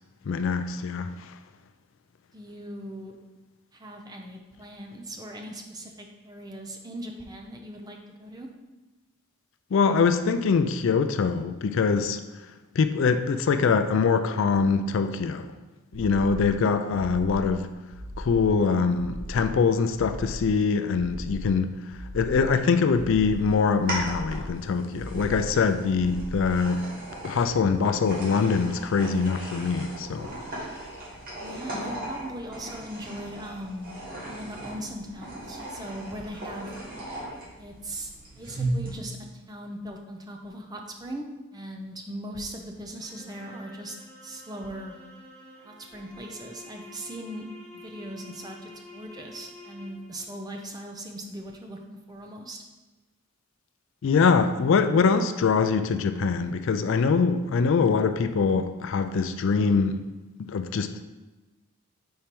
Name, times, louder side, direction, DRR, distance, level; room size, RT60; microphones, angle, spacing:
voice 1, 0.3-1.3 9.7-12.2 12.8-15.5 15.9-17.7 18.2-21.7 22.1-26.9 27.2-30.3 54.0-60.0 60.5-61.1, left 5 dB, 60° left, 0.3 m, -23 dB
voice 2, 2.3-3.1 3.7-8.5 31.4-33.9 34.3-36.7 37.6-38.1 38.4-44.0 44.2-44.9 45.6-47.5 47.7-52.6, right 1 dB, 15° right, 0.6 m, -39 dB
sound 1, 15.9-16.6 16.9-17.6 17.9-18.6 18.9-19.6 19.9-20.6 20.9-21.6 21.9-22.6 22.9-23.6 23.9-24.6 24.9-25.6 25.9-26.6, equal, 55° right, 0.8 m, -38 dB
sound 2, 22.9-38.9, right 1 dB, 40° right, 1.6 m, -37 dB
sound 3, 43.0-50.2, left 2 dB, 5° left, 2.0 m, -48 dB
4.4 x 4.4 x 5.2 m
head